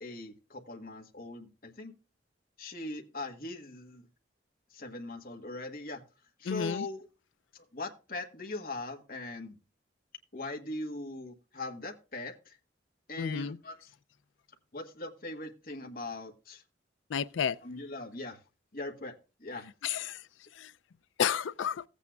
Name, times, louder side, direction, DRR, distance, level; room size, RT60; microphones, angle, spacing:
voice 1, 0.0-1.9 2.6-4.0 4.7-6.0 6.4-7.1 7.5-9.5 10.3-12.6 13.1-13.8 14.7-16.6 17.6-18.4 18.7-19.1 19.4-19.7, left 2 dB, 50° left, 1.3 m, -40 dB
voice 2, 6.5-6.9 13.2-13.6 17.1-17.6 19.8-20.2 21.2-21.8, left 7 dB, 90° left, 0.4 m, -31 dB
15.5 x 8.3 x 2.3 m
head